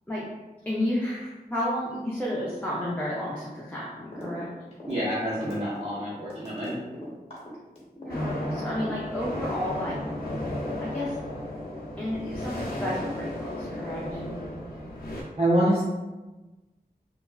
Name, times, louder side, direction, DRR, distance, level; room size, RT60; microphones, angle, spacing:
voice 1, 0.7-4.5 8.0-10.0 10.8-11.2 12.0-14.2, left 1 dB, 10° left, -7 dB, 0.5 m, -31 dB
sound 1, 4.1-4.4 4.7-8.5 8.8-9.7, equal, 40° left, 1.0 m, -40 dB
voice 2, 4.9-6.8 15.4-15.8, right 1 dB, 40° right, -8 dB, 0.6 m, -26 dB
sound 2, 8.1-15.2, left 1 dB, 65° left, 0.7 m, -34 dB
3.4 x 2.1 x 2.4 m, 1.1 s
wide cardioid pair, 75°, 16 cm